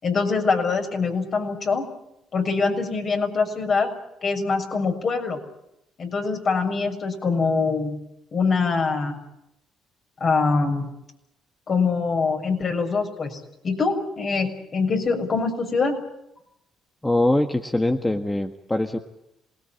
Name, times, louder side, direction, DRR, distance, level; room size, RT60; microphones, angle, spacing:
voice 1, 0.0-1.9 2.3-3.9 4.2-5.4 6.0-8.0 8.3-9.2 10.2-10.9 11.7-16.0, left 4 dB, 45° left, 4 dB, 6.7 m, -24 dB
voice 2, 17.0-19.0, left 1 dB, 10° left, 5 dB, 1.7 m, -23 dB
27.0 x 19.5 x 8.9 m, 0.84 s
supercardioid pair, 75°, 0 cm